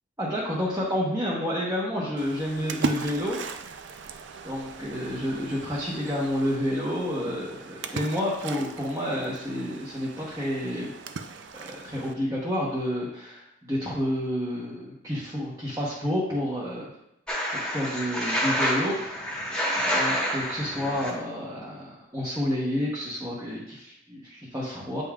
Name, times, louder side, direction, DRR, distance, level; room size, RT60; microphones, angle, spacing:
voice 1, 0.2-3.4 4.4-10.9 11.5-16.9 17.5-19.1 19.9-25.0, equal, 15° right, -7 dB, 1.0 m, -29 dB
Splash splatter, 2.2-12.1, right 4 dB, 65° right, 0.4 m, -38 dB
sound 1, 17.3-21.1, equal, 5° left, 1.2 m, -28 dB
8.4 x 5.4 x 2.4 m, 0.83 s
head